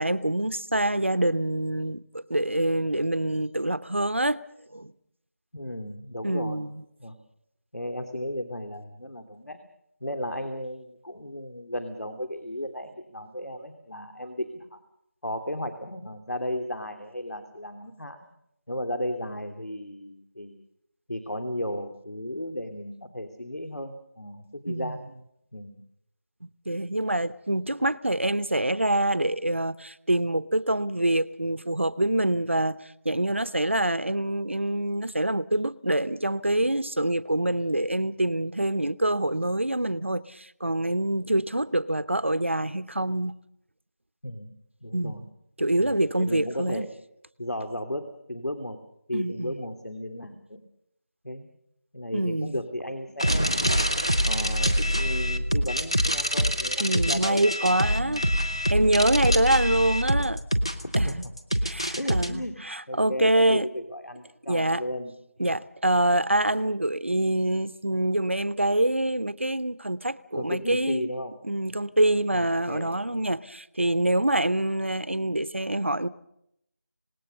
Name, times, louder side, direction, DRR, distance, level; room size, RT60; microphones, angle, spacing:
voice 1, 0.0-4.4 4.7-4.9 6.2-6.7 24.7-24.9 26.7-32.8 33.0-43.3 44.9-45.2 45.6-46.9 49.1-49.5 52.1-52.6 56.8-58.2 58.7-60.4 61.0-61.2 61.6-63.7 64.5-64.8 65.4-71.1 71.4-76.1, right 1 dB, 45° right, 0.8 m, -25 dB
voice 2, 5.5-6.6 7.0-7.2 7.7-9.6 10.0-14.8 15.2-18.2 18.7-20.6 21.1-25.0 25.5-25.8 44.2-45.2 45.8-46.9 47.4-48.8 49.1-50.6 51.2-51.5 51.9-53.9 54.3-58.2 61.1-61.2 61.9-62.5 62.9-65.1 70.4-71.3 72.3-72.9, left 1 dB, 80° left, 2.9 m, -35 dB
sound 1, 53.2-62.3, equal, 20° left, 0.8 m, -25 dB
26.5 x 18.5 x 6.7 m
figure-of-eight pair, 180°, 9 cm